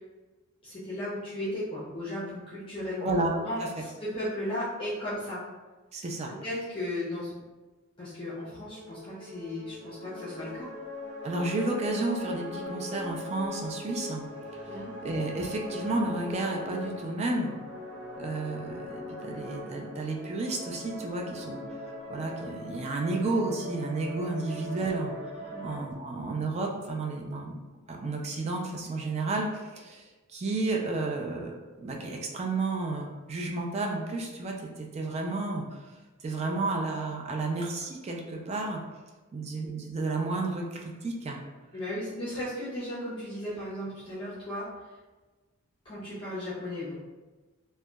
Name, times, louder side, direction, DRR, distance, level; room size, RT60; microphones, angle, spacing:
voice 1, 0.6-5.4 6.3-7.3 8.0-10.7 14.7-14.9 25.5-25.7 41.7-44.7 45.8-47.0, left 1 dB, 25° left, -10 dB, 0.6 m, -35 dB
voice 2, 5.9-6.3 11.2-14.2 14.5-14.8 15.0-17.5 18.2-21.6 22.1-25.1 25.6-27.6 27.9-31.5 31.8-35.9 36.2-38.8 39.3-41.4, right 2 dB, 30° right, 0 dB, 0.3 m, -32 dB
sound 1, 8.3-25.8, left 1 dB, 55° right, 0.9 m, -40 dB
2.7 x 2.1 x 2.2 m, 1.2 s
head